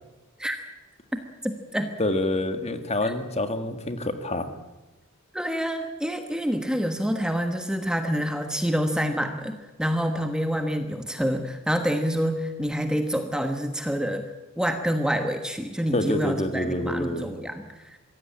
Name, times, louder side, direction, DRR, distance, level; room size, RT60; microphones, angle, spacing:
voice 1, 1.1-1.9 3.0-3.1 5.3-18.0, equal, 5° right, 6 dB, 1.2 m, -27 dB
voice 2, 2.0-4.5 15.9-17.3, left 1 dB, 30° left, 8 dB, 1.8 m, -27 dB
24.0 x 16.5 x 8.6 m, 1.1 s
head